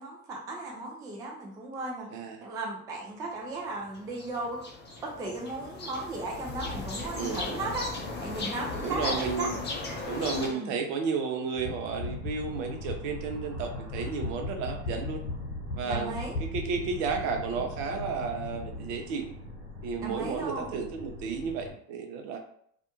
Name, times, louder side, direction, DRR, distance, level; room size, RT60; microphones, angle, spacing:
voice 1, 0.0-2.1 2.4-4.6 5.0-9.5 10.5-10.7 15.8-16.4 20.0-20.7, right 2 dB, 10° right, -2 dB, 0.3 m, -36 dB
voice 2, 2.1-2.4 7.1-7.4 8.8-9.6 10.1-15.2 15.8-16.1 16.4-19.3 19.8-22.4, right 5 dB, 55° right, 4 dB, 0.6 m, -32 dB
sound 1, 3.5-10.5, left 3 dB, 25° left, 0.7 m, -37 dB
sound 2, 11.5-19.0, left 2 dB, 60° left, 0.9 m, -38 dB
sound 3, 11.6-21.8, left 2 dB, 80° right, 1.0 m, -45 dB
2.4 x 2.1 x 2.8 m, 0.67 s
hypercardioid pair, 75°, 46 cm